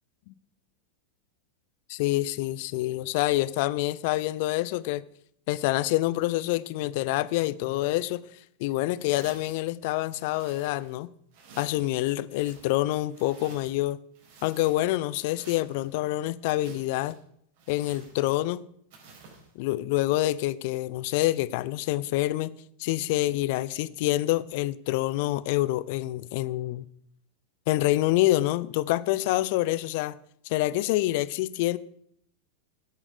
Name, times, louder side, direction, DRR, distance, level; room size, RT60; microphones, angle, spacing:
voice 1, 1.9-5.0 5.5-8.2 8.6-11.1 11.6-14.0 14.4-17.2 17.7-18.6 19.6-26.8 27.7-30.2 30.4-31.8, left 16 dB, 50° left, 0.5 m, -27 dB
sound 1, 9.0-9.7 10.1-11.0 11.3-11.9 12.3-13.8 14.1-15.0 15.2-15.9 16.4-17.2 17.6-18.5 18.9-19.5, right 4 dB, 50° right, 5.0 m, -52 dB
17.0 x 8.7 x 4.9 m
figure-of-eight pair, 90°, 0 cm